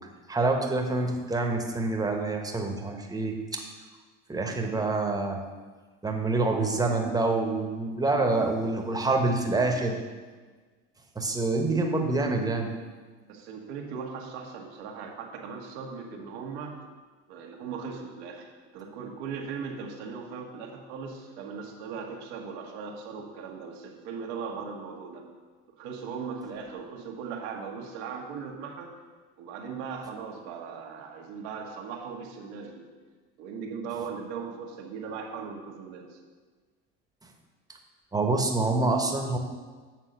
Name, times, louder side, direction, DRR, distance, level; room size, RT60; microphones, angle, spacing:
voice 1, 0.3-3.6 4.3-5.4 6.0-10.0 11.1-12.7 38.1-39.4, right 3 dB, 10° right, 2 dB, 1.1 m, -26 dB
voice 2, 13.3-16.8 17.3-25.3 25.8-28.9 29.4-32.9 33.4-36.2, right 5 dB, 85° right, 1 dB, 1.3 m, -38 dB
8.2 x 3.7 x 6.5 m, 1.4 s
supercardioid pair, 95°, 32 cm